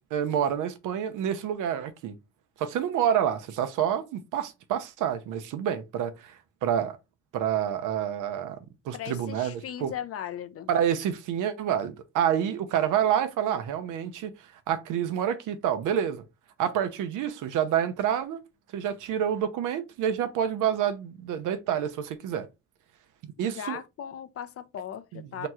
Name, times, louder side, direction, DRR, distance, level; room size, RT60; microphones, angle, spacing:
voice 1, 0.1-2.1 2.6-6.3 6.6-6.9 7.3-8.6 8.9-9.9 10.7-14.3 14.7-16.2 16.6-18.4 18.7-22.5 23.4-23.8 25.1-25.5, right 9 dB, 85° right, 0.7 m, -28 dB
voice 2, 8.9-10.7 23.4-25.5, left 9 dB, 50° left, 0.5 m, -38 dB
2.9 x 2.3 x 4.2 m
cardioid pair, 90°, 30 cm